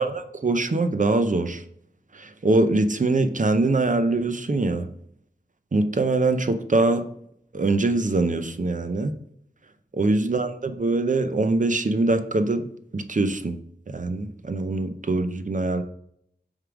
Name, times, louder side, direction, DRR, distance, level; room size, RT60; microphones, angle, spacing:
voice 1, 0.0-1.6 2.1-4.9 5.7-7.0 7.5-9.1 9.9-12.7 12.9-13.6 13.9-15.8, right 2 dB, 50° right, 9 dB, 0.7 m, -23 dB
6.5 x 3.7 x 4.8 m, 0.70 s
wide cardioid pair, 40°, 17 cm